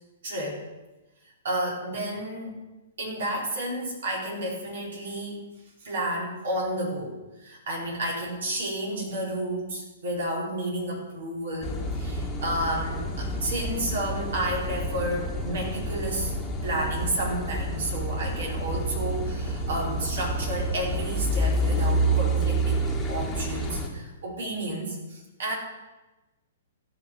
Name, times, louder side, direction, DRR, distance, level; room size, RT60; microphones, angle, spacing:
voice 1, 0.2-0.6 1.4-2.6 3.0-5.4 5.8-16.3 16.6-25.5, right 1 dB, 60° right, -2 dB, 4.5 m, -31 dB
Car passing by / Idling / Accelerating revving vroom, 11.6-23.9, right 1 dB, 10° left, 1.8 m, -28 dB
15.0 x 6.1 x 6.7 m, 1.1 s
figure-of-eight pair, 115°, 0 cm